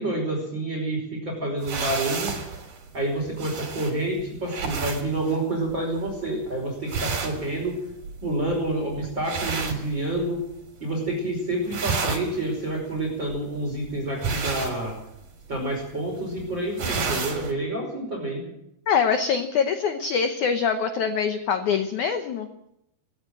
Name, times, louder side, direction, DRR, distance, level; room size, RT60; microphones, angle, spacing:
voice 1, 0.0-2.4 2.9-7.7 8.2-10.4 10.8-14.9 15.5-18.5, right 1 dB, 25° right, -1 dB, 5.8 m, -28 dB
sound 1, 1.6-10.6 10.9-11.3 11.5-17.5, right 5 dB, 55° right, 4.7 m, -32 dB
voice 2, 18.9-22.5, left 6 dB, 65° left, 7 dB, 2.1 m, -24 dB
19.0 x 18.0 x 7.7 m, 0.80 s
omnidirectional pair, 4.6 m